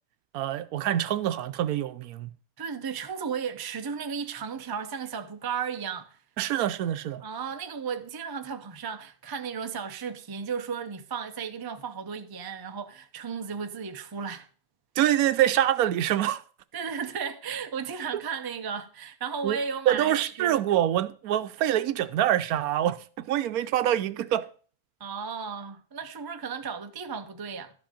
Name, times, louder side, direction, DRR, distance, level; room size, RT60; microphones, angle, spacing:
voice 1, 0.3-2.3 6.4-7.2 15.0-16.4 19.4-19.6 19.9-24.5, right 12 dB, 80° right, 1.1 m, -25 dB
voice 2, 2.6-6.2 7.2-14.5 16.7-20.6 25.0-27.7, right 6 dB, 30° right, 0.4 m, -34 dB
12.5 x 5.2 x 5.1 m
omnidirectional pair, 1.5 m